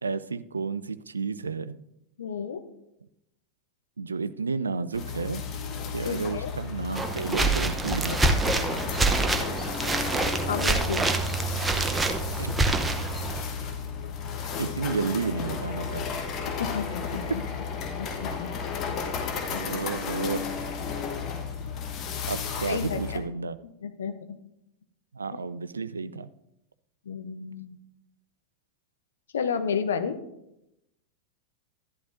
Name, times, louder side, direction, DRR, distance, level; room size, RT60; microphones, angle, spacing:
voice 1, 0.0-1.8 4.0-5.4 5.9-8.2 12.4-12.7 14.6-16.1 17.3-17.4 19.5-20.4 22.3-23.6 25.1-26.3, right 4 dB, 75° right, 15 dB, 0.3 m, -31 dB
voice 2, 2.2-2.6 6.0-6.5 10.5-11.1 16.6-17.4 18.0-18.5 19.5-19.8 22.6-23.2 23.8-24.1 27.1-27.7 29.3-30.2, left 6 dB, 65° left, 9 dB, 0.7 m, -31 dB
sound 1, 4.9-23.2, left 6 dB, 35° left, 1.2 m, -33 dB
sound 2, 7.0-13.4, right 3 dB, 10° right, 0.8 m, -26 dB
12.0 x 11.5 x 2.6 m, 0.85 s
figure-of-eight pair, 90°, 0 cm